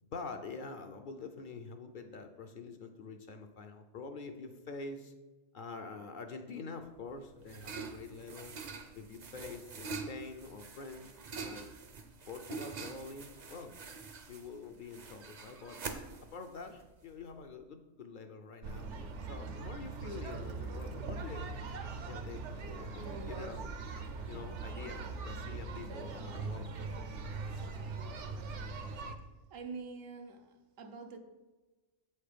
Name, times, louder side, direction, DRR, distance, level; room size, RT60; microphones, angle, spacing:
voice 1, 0.0-5.1 5.5-8.6 8.9-11.1 11.4-11.7 12.3-13.7 14.3-15.8 16.3-18.9 19.3-21.5 22.1-23.7 24.3-26.9, left 4 dB, 55° left, 6 dB, 0.6 m, -46 dB
sound 1, 6.9-17.4, right 4 dB, 45° right, 0.6 m, -45 dB
sound 2, 18.6-29.1, right 4 dB, 70° right, 0.9 m, -41 dB
voice 2, 29.5-31.2, right 4 dB, 90° right, 4 dB, 1.2 m, -45 dB
7.7 x 4.3 x 5.0 m, 1.2 s
omnidirectional pair, 1.3 m